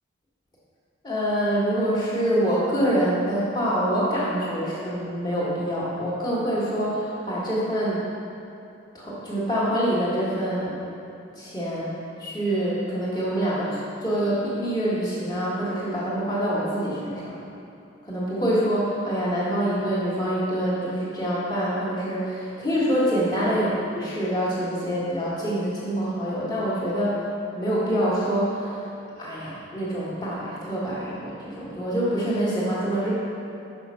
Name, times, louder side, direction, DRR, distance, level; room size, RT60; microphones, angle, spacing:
voice 1, 1.0-8.0 8.9-10.8 11.4-11.9 12.2-17.4 18.0-27.2 27.5-28.9 29.2-33.1, equal, 20° left, -8 dB, 1.5 m, -25 dB
5.7 x 5.2 x 5.6 m, 2.9 s
head